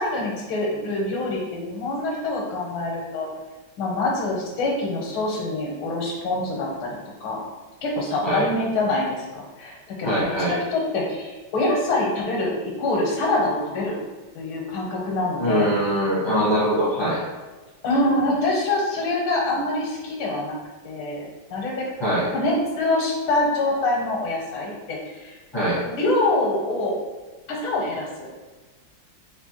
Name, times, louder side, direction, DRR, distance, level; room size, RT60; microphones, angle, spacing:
voice 1, 0.0-3.3 3.8-7.4 7.8-14.0 14.3-15.7 17.8-20.6 20.8-21.9 22.3-25.3 25.8-27.0 27.5-28.3, left 2 dB, 85° left, -1 dB, 1.6 m, -25 dB
voice 2, 10.0-10.6 15.4-17.2 22.0-22.3 25.5-25.8, equal, 35° left, -9 dB, 0.4 m, -22 dB
4.3 x 2.5 x 2.9 m, 1.3 s
omnidirectional pair, 2.2 m